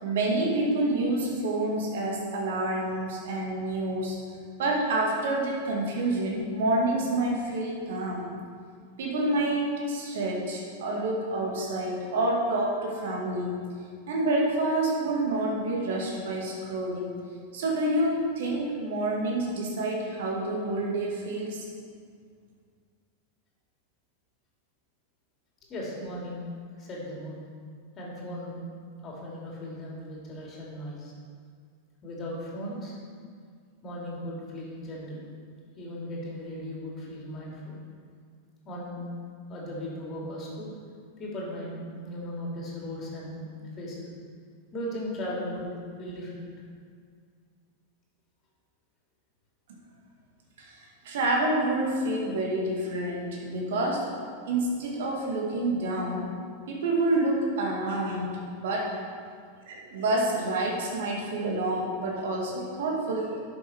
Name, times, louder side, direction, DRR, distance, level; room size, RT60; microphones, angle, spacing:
voice 1, 0.0-4.2 4.6-8.3 9.0-13.6 14.1-17.1 17.5-21.7 50.6-54.1 54.4-56.3 56.7-59.0 59.7-63.4, right 2 dB, 55° right, -1 dB, 2.0 m, -28 dB
voice 2, 25.6-26.4 26.8-27.4 28.0-28.6 29.0-31.1 32.0-33.0 33.8-35.2 35.8-37.8 38.6-39.1 39.5-40.7 41.2-44.1 44.7-46.5, left 1 dB, 30° left, -4 dB, 2.8 m, -37 dB
11.0 x 6.8 x 4.4 m, 2.1 s
figure-of-eight pair, 90°, 0 cm